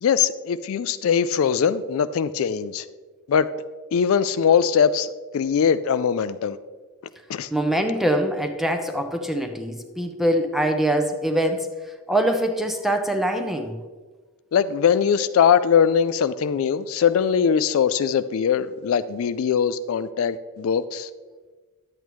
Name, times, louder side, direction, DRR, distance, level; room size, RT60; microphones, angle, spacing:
voice 1, 0.0-2.8 3.3-3.5 3.9-6.6 7.3-7.5 14.5-21.1, left 7 dB, 60° left, 12 dB, 0.3 m, -21 dB
voice 2, 7.5-11.7 12.1-13.8, right 1 dB, ahead, 5 dB, 0.6 m, -23 dB
10.5 x 8.4 x 3.1 m, 1.4 s
head